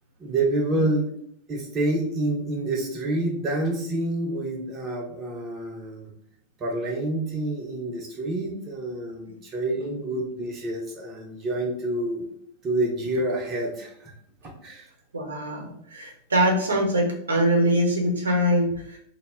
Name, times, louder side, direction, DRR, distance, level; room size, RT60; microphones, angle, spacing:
voice 1, 0.2-1.0 1.5-6.1 6.6-12.2 12.6-14.1 14.4-14.9, right 2 dB, 30° right, 0 dB, 0.5 m, -28 dB
voice 2, 15.1-19.0, equal, 75° right, 0 dB, 0.6 m, -23 dB
2.0 x 2.0 x 3.3 m, 0.69 s
figure-of-eight pair, 90°, 0 cm